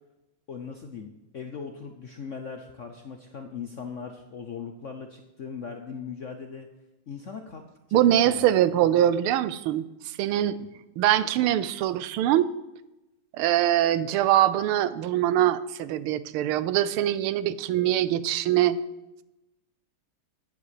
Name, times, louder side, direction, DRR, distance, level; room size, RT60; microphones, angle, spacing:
voice 1, 0.5-6.7 7.1-7.6 7.9-9.0 10.6-10.7, left 6 dB, 60° left, 5 dB, 0.8 m, -39 dB
voice 2, 7.9-10.6 11.0-12.5 13.3-18.8, right 12 dB, 85° right, 15 dB, 1.5 m, -23 dB
8.8 x 7.7 x 8.2 m, 0.97 s
omnidirectional pair, 2.3 m